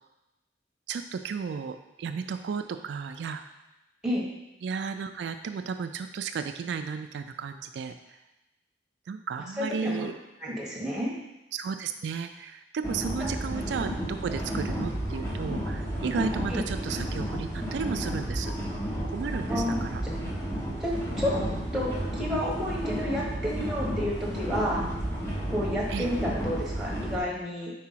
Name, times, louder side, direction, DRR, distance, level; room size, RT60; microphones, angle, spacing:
voice 1, 0.9-3.4 4.6-8.2 9.1-10.1 11.5-18.5 19.1-20.3 25.9-26.1, right 6 dB, 70° right, 8 dB, 0.3 m, -34 dB
voice 2, 9.6-10.1 10.4-11.1 13.2-13.3 16.5-16.6 19.5-19.8 20.8-21.4 21.7-24.9 25.5-27.7, equal, 5° right, -5 dB, 1.3 m, -30 dB
sound 1, 12.8-27.2, equal, 15° left, 1.2 m, -32 dB
4.7 x 4.7 x 5.7 m, 0.98 s
head